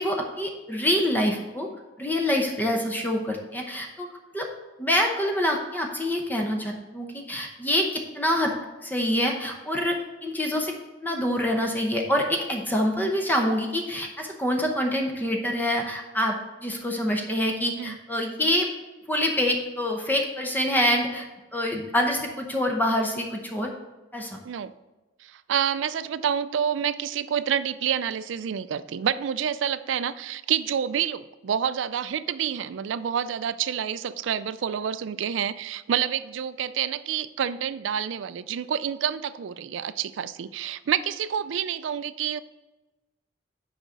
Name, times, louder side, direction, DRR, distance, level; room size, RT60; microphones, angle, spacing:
voice 1, 0.0-1.7 2.0-4.1 4.3-4.5 4.8-8.5 8.8-10.7 11.0-18.7 19.1-23.7 24.1-24.4, equal, 10° left, 1 dB, 0.8 m, -26 dB
voice 2, 25.2-42.4, right 8 dB, 75° right, 15 dB, 0.4 m, -28 dB
6.2 x 5.0 x 6.5 m, 1.1 s
head